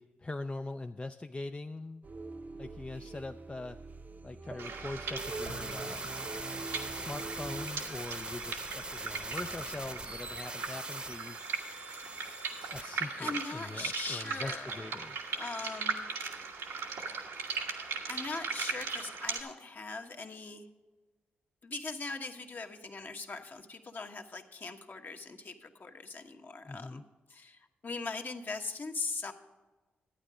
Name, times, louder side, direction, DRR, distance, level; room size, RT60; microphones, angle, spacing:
voice 1, 0.0-2.1 2.6-3.8 4.2-6.1 6.9-11.4 12.7-15.2 26.7-27.0, left 2 dB, 25° left, 6 dB, 0.4 m, -42 dB
sound 1, 2.0-7.7, right 3 dB, 40° right, 0.6 m, -44 dB
sound 2, 4.6-19.4, right 5 dB, 85° right, 1.3 m, -39 dB
sound 3, 5.2-14.5, right 2 dB, 20° right, 0.9 m, -43 dB
voice 2, 12.7-14.9 15.3-16.0 18.0-20.7 21.6-27.0 27.3-29.3, left 3 dB, 50° left, 4 dB, 1.2 m, -40 dB
12.0 x 9.1 x 4.9 m, 1.3 s
supercardioid pair, 50°, 4 cm